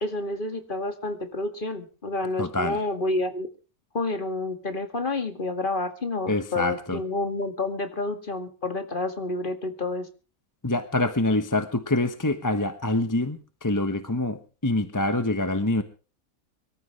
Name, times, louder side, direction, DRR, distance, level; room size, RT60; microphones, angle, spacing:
voice 1, 0.0-3.5 3.9-10.1, left 2 dB, 35° left, 7 dB, 2.2 m, -29 dB
voice 2, 2.4-2.8 6.3-7.0 10.6-15.8, left 2 dB, 15° left, 9 dB, 1.0 m, -26 dB
24.0 x 14.0 x 3.3 m, 0.35 s
omnidirectional pair, 1.6 m